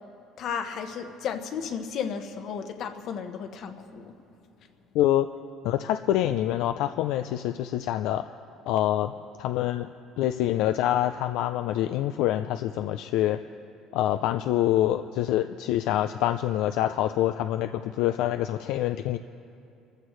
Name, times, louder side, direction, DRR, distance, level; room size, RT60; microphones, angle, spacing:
voice 1, 0.4-4.1, left 7 dB, 50° left, 7 dB, 1.0 m, -33 dB
voice 2, 4.9-5.3 5.6-8.2 8.7-9.1 9.4-9.9 10.2-13.4 13.9-19.2, left 12 dB, 75° left, 8 dB, 0.4 m, -26 dB
27.0 x 14.5 x 3.1 m, 2.6 s
cardioid pair, 155°, 0 cm